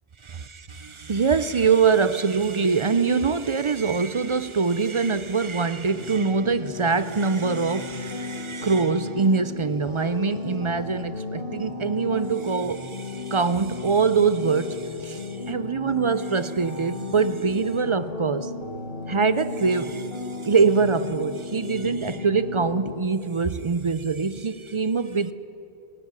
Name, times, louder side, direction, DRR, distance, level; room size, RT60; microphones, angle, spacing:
voice 1, 0.2-18.5 19.1-20.1 20.4-25.3, right 5 dB, 40° right, 0.5 m, -24 dB
sound 1, 5.9-23.1, left 4 dB, 60° left, 1.8 m, -35 dB
17.5 x 17.0 x 9.5 m
omnidirectional pair, 1.1 m